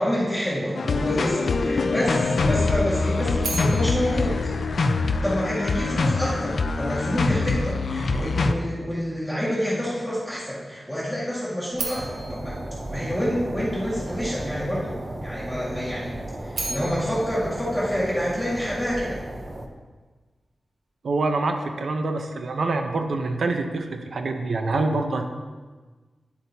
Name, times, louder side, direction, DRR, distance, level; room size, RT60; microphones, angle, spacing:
voice 1, 0.0-4.5 5.2-12.6 12.9-15.0 15.2-16.2 16.4-19.2, equal, ahead, -8 dB, 1.9 m, -27 dB
sound 1, 0.7-8.5, left 3 dB, 60° left, 0.4 m, -24 dB
sound 2, 3.4-5.5 11.7-13.9 16.3-18.7, right 3 dB, 90° right, 1.5 m, -37 dB
sound 3, 12.0-19.7, right 1 dB, 30° right, 0.7 m, -35 dB
voice 2, 21.0-25.3, right 3 dB, 70° right, 5 dB, 0.7 m, -26 dB
9.7 x 8.0 x 2.8 m, 1.3 s
wide cardioid pair, 150°, 0 cm